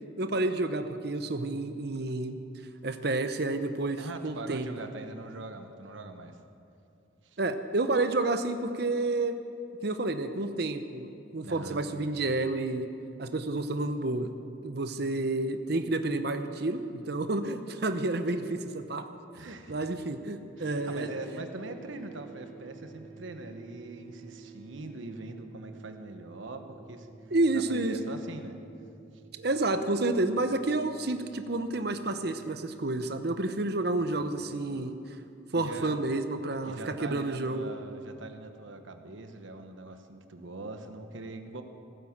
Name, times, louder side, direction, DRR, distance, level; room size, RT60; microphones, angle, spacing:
voice 1, 0.2-2.4 2.8-4.7 7.4-9.4 9.8-12.9 13.2-14.3 14.6-19.0 19.5-21.1 27.3-28.0 29.4-34.9 35.5-37.7, right 2 dB, 50° right, 9 dB, 0.8 m, -30 dB
voice 2, 4.0-6.4 7.2-7.4 11.4-11.8 19.3-19.8 20.6-28.6 34.0-34.3 35.6-36.0 36.7-41.6, right 2 dB, 75° right, 7 dB, 1.1 m, -42 dB
sound 1, 20.6-32.7, right 6 dB, 5° left, 1.5 m, -51 dB
16.5 x 9.6 x 7.3 m, 2.7 s
head